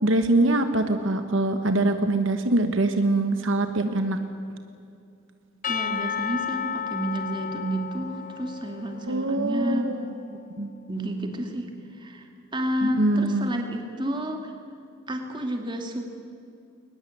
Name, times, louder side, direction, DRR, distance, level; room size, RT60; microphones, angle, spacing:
voice 1, 0.0-4.2 9.1-10.0 10.6-10.7 12.8-13.5, right 2 dB, 70° right, 8 dB, 1.3 m, -23 dB
Percussion / Church bell, 5.6-10.0, left 7 dB, 40° left, 0.9 m, -33 dB
voice 2, 5.7-9.9 10.9-11.7 11.9-12.3 12.5-14.5 15.1-16.1, equal, 25° right, 4 dB, 2.5 m, -30 dB
21.5 x 20.0 x 8.5 m, 2.6 s
head